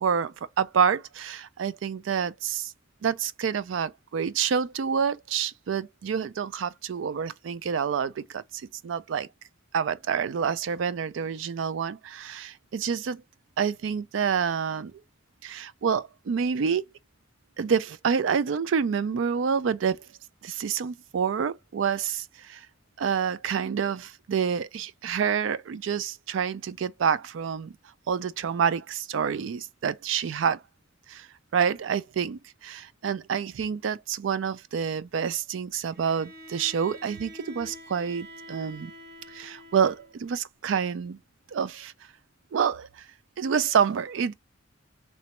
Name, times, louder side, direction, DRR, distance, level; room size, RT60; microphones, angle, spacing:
voice 1, 0.0-2.7 3.0-9.3 9.7-13.2 13.6-14.9 15.4-16.8 17.6-20.1 20.4-22.7 23.0-27.7 28.1-30.6 31.1-31.3 31.5-38.9 39.3-41.2 41.5-41.9 42.5-43.0 43.4-44.3, right 7 dB, 70° right, 0.4 m, -28 dB
Bowed string instrument, 35.9-40.2, equal, 55° right, 1.1 m, -46 dB
3.2 x 3.0 x 2.9 m
head